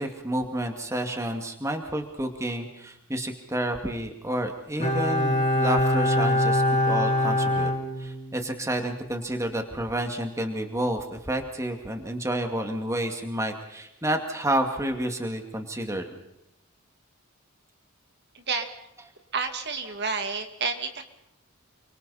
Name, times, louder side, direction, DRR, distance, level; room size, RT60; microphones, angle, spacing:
voice 1, 0.0-7.7 8.0-16.2, right 1 dB, 15° right, 4 dB, 2.3 m, -30 dB
Bowed string instrument, 4.8-8.5 8.8-8.9, left 1 dB, 35° left, 3.4 m, -24 dB
voice 2, 18.3-18.7 19.3-21.0, right 4 dB, 50° right, 5 dB, 2.4 m, -30 dB
29.5 x 25.0 x 4.3 m, 0.86 s
head